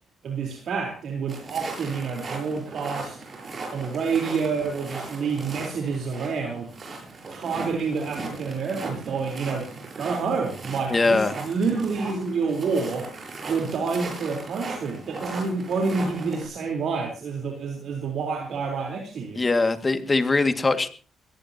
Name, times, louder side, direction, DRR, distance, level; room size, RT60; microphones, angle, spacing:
voice 1, 0.2-3.2 3.7-6.7 7.3-9.7 10.0-13.1 13.4-19.4, right 5 dB, 65° right, 2 dB, 4.1 m, -28 dB
sound 1, 1.3-16.5, right 3 dB, 40° right, 7.5 m, -37 dB
voice 2, 10.9-11.3 19.4-20.9, left 3 dB, 25° left, 8 dB, 2.2 m, -21 dB
22.0 x 17.5 x 3.0 m, 0.38 s
cardioid pair, 90°, 0 cm